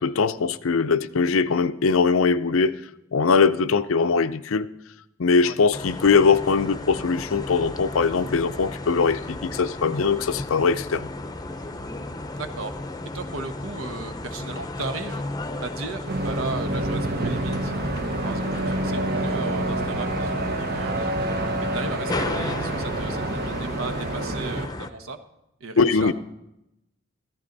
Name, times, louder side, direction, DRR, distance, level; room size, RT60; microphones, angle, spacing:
voice 1, 0.0-2.7 3.1-4.7 5.2-11.1 25.8-26.1, left 5 dB, 75° left, 14 dB, 0.6 m, -21 dB
sound 1, 5.7-24.9, left 2 dB, 20° left, 0.7 m, -34 dB
voice 2, 12.3-12.7 13.1-15.2 15.6-17.7 18.2-21.1 21.7-25.2 25.6-26.1, right 3 dB, 75° right, 7 dB, 1.2 m, -35 dB
sound 2, 16.1-24.7, right 2 dB, 50° right, 0.9 m, -28 dB
14.5 x 13.5 x 4.0 m, 0.87 s
head